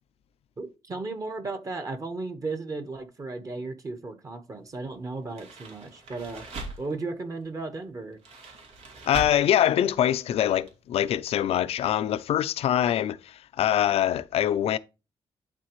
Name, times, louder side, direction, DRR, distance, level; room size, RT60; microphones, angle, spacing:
voice 1, 0.6-6.5 6.8-8.2, right 3 dB, 35° right, 1.4 m, -35 dB
sound 1, 5.2-7.0 8.1-9.5 9.8-10.0 10.7-10.8 10.9-11.0, right 2 dB, 80° right, 3.0 m, -40 dB
voice 2, 9.0-14.8, left 11 dB, 80° left, 0.6 m, -24 dB
11.5 x 4.1 x 3.1 m
cardioid pair, 125°, 10 cm